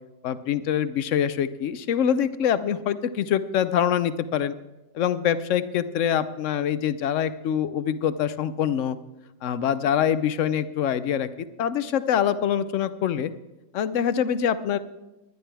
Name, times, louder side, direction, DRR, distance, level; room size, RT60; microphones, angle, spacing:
voice 1, 0.2-4.5 5.0-9.0 9.4-11.3 11.6-13.3 13.7-14.8, left 9 dB, 80° left, 13 dB, 1.0 m, -24 dB
20.0 x 11.0 x 3.4 m, 0.99 s
omnidirectional pair, 1.3 m